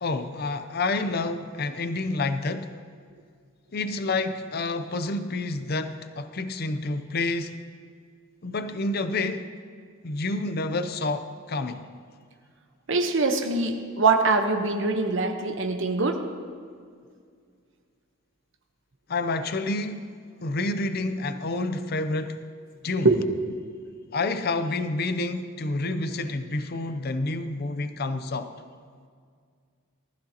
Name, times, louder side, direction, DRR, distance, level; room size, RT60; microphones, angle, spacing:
voice 1, 0.0-2.7 3.7-7.6 8.4-9.5 10.0-11.9 19.1-20.1 20.4-22.5 22.8-23.1 24.1-28.5, left 2 dB, 50° left, 0.6 m, -29 dB
voice 2, 12.9-16.2 23.0-23.2, right 3 dB, 65° right, 1.0 m, -23 dB
19.5 x 14.0 x 2.9 m
head